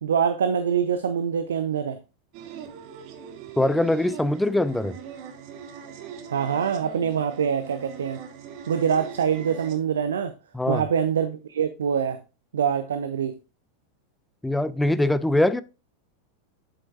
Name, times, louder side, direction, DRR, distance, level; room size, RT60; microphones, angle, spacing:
voice 1, 0.0-2.0 6.3-8.2 8.7-10.3 10.7-12.2 12.5-13.3, right 7 dB, 65° right, 0.5 m, -24 dB
sound 1, 2.3-9.8, right 7 dB, 45° right, 1.2 m, -41 dB
voice 2, 3.6-5.0 10.5-10.8 14.4-15.6, left 1 dB, 5° left, 0.4 m, -22 dB
7.6 x 7.6 x 2.4 m
figure-of-eight pair, 90°, 0 cm